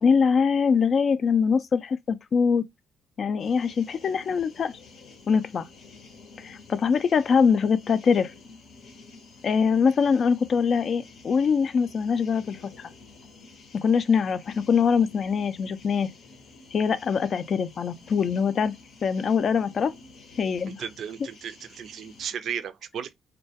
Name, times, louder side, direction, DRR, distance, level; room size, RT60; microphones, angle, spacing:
voice 1, 0.0-2.6 3.2-4.7 5.3-5.7 6.4-8.3 9.4-12.9 13.7-16.1 16.7-18.7 19.0-19.9 20.4-20.8, left 6 dB, 50° left, 0.3 m, -23 dB
sound 1, 3.4-22.3, left 3 dB, 75° left, 0.7 m, -50 dB
voice 2, 20.8-23.1, right 8 dB, 70° right, 0.4 m, -35 dB
2.2 x 2.2 x 2.7 m
cardioid pair, 90°, 0 cm